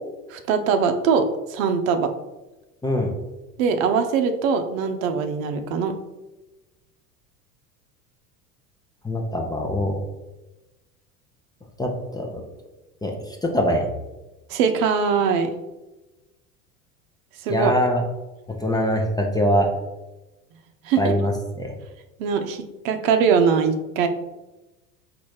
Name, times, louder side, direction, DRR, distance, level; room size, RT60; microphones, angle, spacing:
voice 1, 0.3-2.1 3.6-5.9 14.5-15.5 17.4-17.7 20.8-21.1 22.2-24.1, right 6 dB, 60° right, 7 dB, 0.7 m, -22 dB
voice 2, 9.0-10.0 11.8-12.4 13.0-13.1 13.4-13.9 17.5-18.0 18.6-19.7 21.0-21.7, equal, 10° left, 2 dB, 0.6 m, -23 dB
4.1 x 2.6 x 4.6 m, 1.0 s
hypercardioid pair, 75°, 45 cm